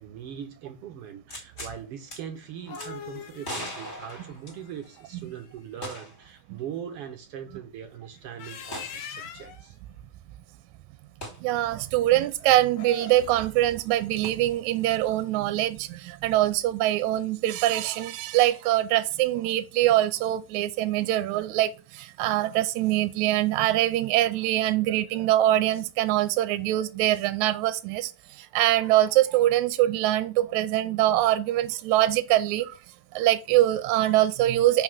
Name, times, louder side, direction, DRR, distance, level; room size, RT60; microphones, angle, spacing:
voice 1, 0.0-9.8, right 9 dB, 65° right, 1.5 m, -40 dB
sound 1, 1.3-1.8 2.1-2.2 2.7-2.9 3.4-4.9 5.8-6.3 6.6-6.7 8.7-9.0 11.2-11.4 14.2-14.3, left 1 dB, 25° left, 2.0 m, -38 dB
sound 2, 2.4-5.5 8.2-9.7 12.6-13.5, left 7 dB, 75° left, 2.4 m, -43 dB
voice 2, 11.4-28.1 28.4-32.8 33.1-34.8, right 14 dB, 85° right, 1.9 m, -23 dB
5.6 x 5.1 x 6.2 m
omnidirectional pair, 3.3 m